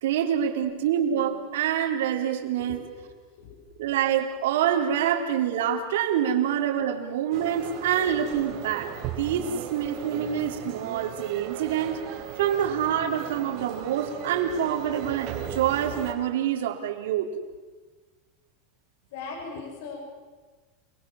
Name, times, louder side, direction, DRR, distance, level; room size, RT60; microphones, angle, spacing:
voice 1, 0.0-2.8 3.8-12.0 12.4-17.3, right 9 dB, 85° right, 3 dB, 4.0 m, -26 dB
voice 2, 2.6-3.1 3.4-3.7 9.9-10.1 12.4-12.6 14.5-14.6 19.1-20.0, left 5 dB, 70° left, 0 dB, 7.3 m, -40 dB
sound 1, 7.3-16.1, right 8 dB, 40° right, 4.4 m, -37 dB
28.5 x 22.0 x 7.4 m, 1.3 s
supercardioid pair, 165°, 0 cm